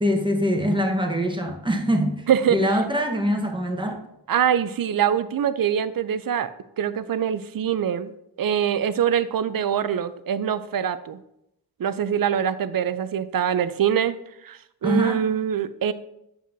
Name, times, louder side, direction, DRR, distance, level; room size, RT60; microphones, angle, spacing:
voice 1, 0.0-2.2 2.5-4.0 14.8-15.2, equal, 10° right, 2 dB, 1.1 m, -23 dB
voice 2, 2.3-2.8 4.3-6.5 6.8-8.1 8.4-11.2 11.8-14.2 14.4-15.9, right 9 dB, 55° right, 13 dB, 0.5 m, -24 dB
7.5 x 5.1 x 2.6 m, 0.79 s
cardioid pair, 45°, 41 cm